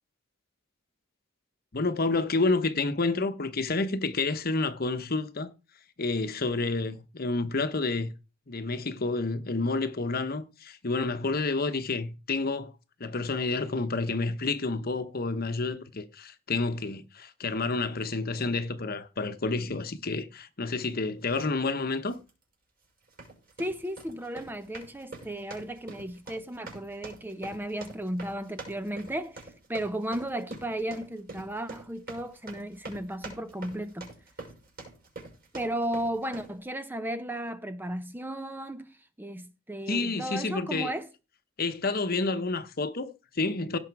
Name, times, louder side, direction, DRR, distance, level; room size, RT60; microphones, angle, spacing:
voice 1, 1.7-5.5 6.0-8.1 8.5-12.7 13.0-22.2 39.9-40.9 41.6-43.8, left 3 dB, 45° left, 1.0 m, -29 dB
sound 1, 21.3-21.5 22.1-22.3 23.0-36.6, right 3 dB, 45° right, 6.1 m, -45 dB
voice 2, 23.6-34.1 35.5-41.1, right 1 dB, 10° right, 0.6 m, -35 dB
17.0 x 6.3 x 4.8 m
head